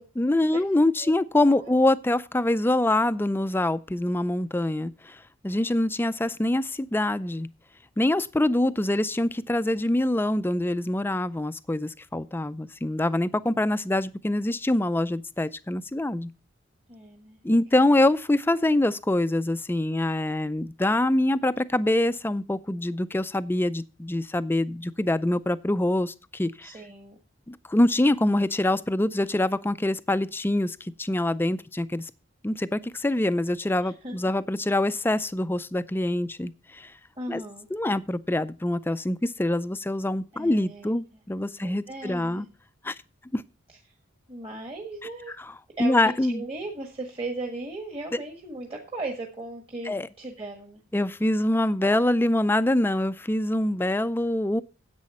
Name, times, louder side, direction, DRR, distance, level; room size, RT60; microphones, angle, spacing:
voice 1, 0.2-5.2 5.4-7.5 8.0-16.3 17.4-26.7 27.5-32.1 32.4-36.9 37.3-37.4 37.7-42.5 42.8-42.9 43.3-43.4 45.8-46.5 49.9-50.1 50.9-54.6, left 1 dB, 10° left, 0.4 m, -25 dB
voice 2, 1.5-1.8 5.6-5.9 8.7-8.8 16.9-17.4 17.7-17.8 26.6-27.2 33.8-34.1 37.2-37.7 40.3-40.9 41.6-42.5 44.3-45.3 45.8-50.8, right 2 dB, 30° right, 1.5 m, -37 dB
10.5 x 8.3 x 4.3 m
head